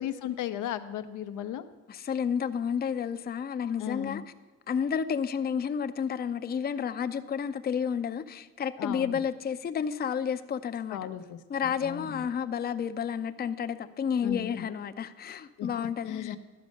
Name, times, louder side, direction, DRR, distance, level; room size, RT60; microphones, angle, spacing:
voice 1, 0.0-1.6 3.8-4.2 8.8-9.2 10.9-11.4 11.6-12.2 14.2-14.7 15.6-16.4, left 10 dB, 80° left, 9 dB, 0.7 m, -36 dB
voice 2, 1.9-4.2 4.7-11.0 11.5-16.4, left 7 dB, 30° left, 10 dB, 0.5 m, -31 dB
12.0 x 5.2 x 6.4 m, 1.3 s
cardioid pair, 90°, 30 cm